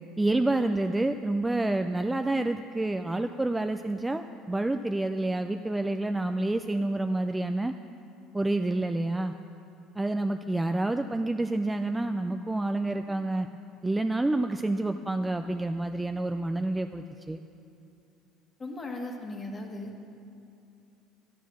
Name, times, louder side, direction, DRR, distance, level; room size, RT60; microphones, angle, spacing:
voice 1, 0.2-7.7 8.3-9.3 10.0-13.5 13.8-17.4, right 2 dB, 10° right, 7 dB, 0.3 m, -28 dB
voice 2, 18.6-19.9, left 2 dB, 25° left, 2 dB, 1.4 m, -37 dB
12.0 x 9.3 x 6.1 m, 2.6 s
cardioid pair, 125°, 0 cm